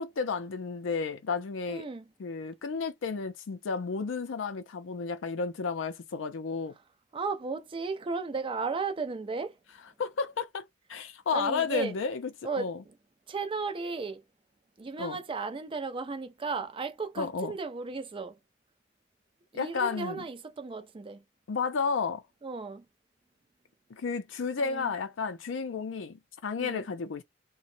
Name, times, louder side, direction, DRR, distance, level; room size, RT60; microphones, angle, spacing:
voice 1, 0.0-1.8 2.2-6.7 10.0-12.3 12.6-12.8 15.0-15.2 17.2-17.6 19.6-20.2 21.5-22.2 23.9-27.2, left 5 dB, 75° left, 0.5 m, -32 dB
voice 2, 1.7-2.0 7.1-9.5 11.3-11.9 12.4-12.7 13.3-14.2 14.8-18.4 19.5-21.2 22.4-22.8 24.6-24.9 26.6-26.8, right 4 dB, 25° right, 0.4 m, -35 dB
2.8 x 2.2 x 2.5 m
head